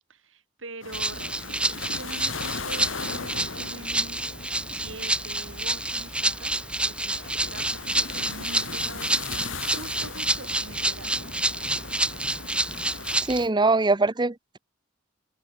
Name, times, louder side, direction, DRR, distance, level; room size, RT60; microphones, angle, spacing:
voice 1, 0.1-6.6 6.8-11.1, right 2 dB, 90° right, 6.8 m, -44 dB
sound 1, 0.8-13.2, left 4 dB, 85° left, 3.5 m, -39 dB
Rattle (instrument), 0.9-13.5, right 1 dB, 5° right, 1.0 m, -28 dB
voice 2, 13.2-14.6, right 3 dB, 25° right, 0.8 m, -23 dB
head